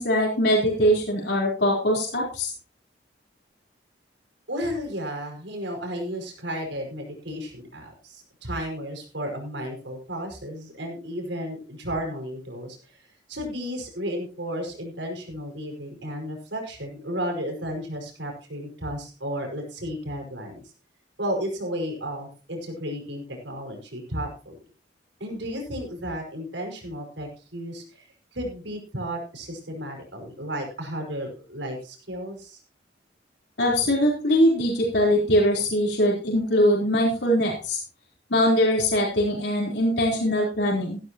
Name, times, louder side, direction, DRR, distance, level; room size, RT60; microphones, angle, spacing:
voice 1, 0.0-2.5 33.6-37.8 38.3-41.0, equal, 65° left, -3 dB, 4.1 m, -22 dB
voice 2, 4.5-13.0 13.3-20.7 21.2-24.6 25.2-28.0 28.3-32.6, equal, 80° right, 2 dB, 5.5 m, -33 dB
15.5 x 13.0 x 3.0 m, 0.35 s
head